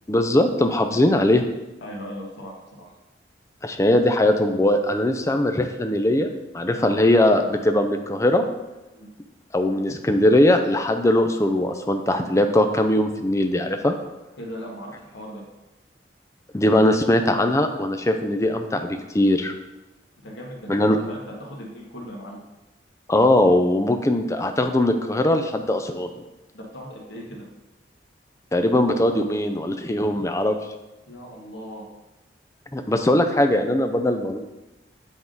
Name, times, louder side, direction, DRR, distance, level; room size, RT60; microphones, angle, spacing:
voice 1, 0.1-1.4 3.6-6.3 6.5-8.4 9.5-14.0 16.5-19.5 20.7-21.0 23.1-26.1 28.5-30.6 32.7-34.4, left 1 dB, 15° left, 6 dB, 0.4 m, -20 dB
voice 2, 1.8-2.9 6.7-7.0 8.9-9.1 14.4-15.4 20.2-22.4 26.5-27.4 31.1-31.8, equal, 85° left, -2 dB, 1.6 m, -38 dB
8.2 x 3.6 x 3.8 m, 1.0 s
head